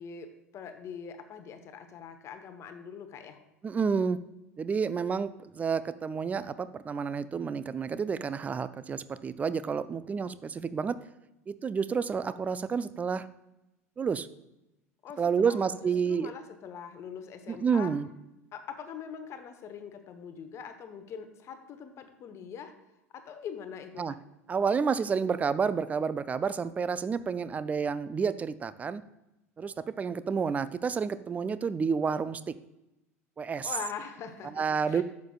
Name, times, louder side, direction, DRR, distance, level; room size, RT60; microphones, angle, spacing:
voice 1, 0.0-3.4 15.0-17.9 18.5-22.7 23.1-24.1 33.6-35.0, left 7 dB, 35° left, 8 dB, 1.0 m, -43 dB
voice 2, 3.6-4.2 4.6-11.0 11.5-13.3 14.0-14.3 15.2-16.3 17.5-18.1 24.0-24.1 24.5-29.0 29.6-32.6 33.4-33.7 34.6-35.0, right 6 dB, 20° right, 15 dB, 0.4 m, -30 dB
11.0 x 7.3 x 2.3 m, 0.93 s
figure-of-eight pair, 75°, 8 cm